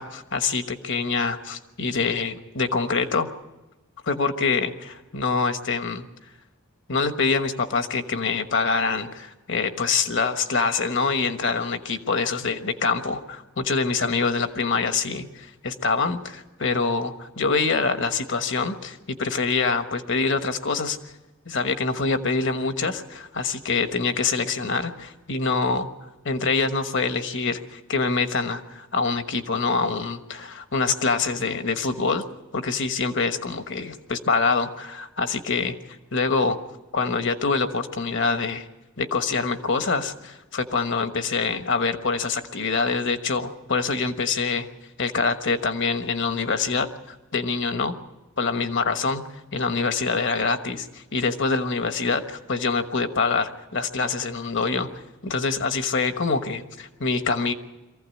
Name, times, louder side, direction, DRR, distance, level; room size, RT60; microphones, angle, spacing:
voice 1, 0.0-3.3 4.1-6.0 6.9-21.0 21.5-25.9 26.2-32.2 32.5-35.7 36.1-36.6 36.9-38.7 39.0-44.7 45.0-48.0 48.4-54.9 55.2-57.5, left 4 dB, 60° left, 8 dB, 1.3 m, -25 dB
23.5 x 15.5 x 8.4 m, 1.1 s
head